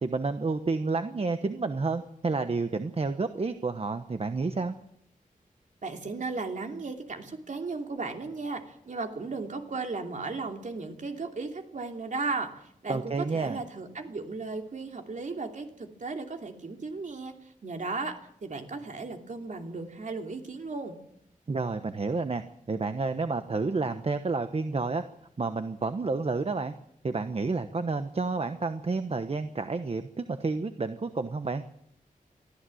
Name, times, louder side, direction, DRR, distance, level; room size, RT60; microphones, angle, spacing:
voice 1, 0.0-4.7 12.9-13.6 21.5-22.4 22.7-25.0 25.4-26.7 27.0-31.6, right 3 dB, 45° right, 9 dB, 1.0 m, -30 dB
voice 2, 5.8-17.3 17.6-21.0, right 3 dB, 60° right, 4 dB, 3.0 m, -35 dB
23.0 x 14.5 x 7.8 m, 0.72 s
wide cardioid pair, 125°, 15 cm